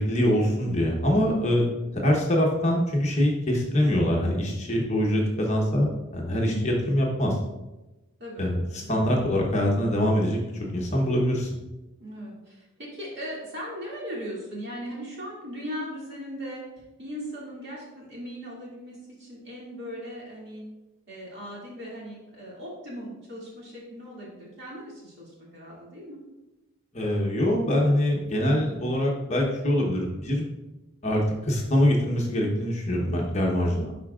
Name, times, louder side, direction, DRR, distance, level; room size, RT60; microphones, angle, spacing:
voice 1, 0.0-7.4 8.4-11.5 26.9-30.5 31.0-33.9, equal, 30° left, -1 dB, 1.0 m, -24 dB
voice 2, 6.4-6.7 8.2-8.4 12.0-16.6 17.0-20.6 21.1-26.2 33.7-34.0, equal, 50° right, -5 dB, 2.4 m, -38 dB
11.0 x 4.4 x 2.4 m, 1.0 s
head